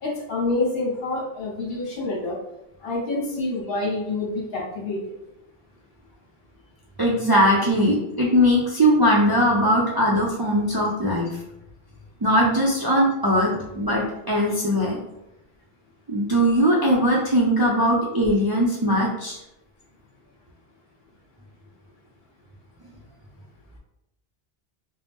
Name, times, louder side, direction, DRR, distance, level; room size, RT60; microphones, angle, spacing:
voice 1, 0.0-2.4 2.8-5.0, left 2 dB, 70° left, -3 dB, 1.1 m, -27 dB
voice 2, 7.0-11.3 12.2-15.0 16.1-19.4, equal, 40° right, -4 dB, 0.3 m, -20 dB
2.7 x 2.1 x 3.4 m, 0.85 s
omnidirectional pair, 1.0 m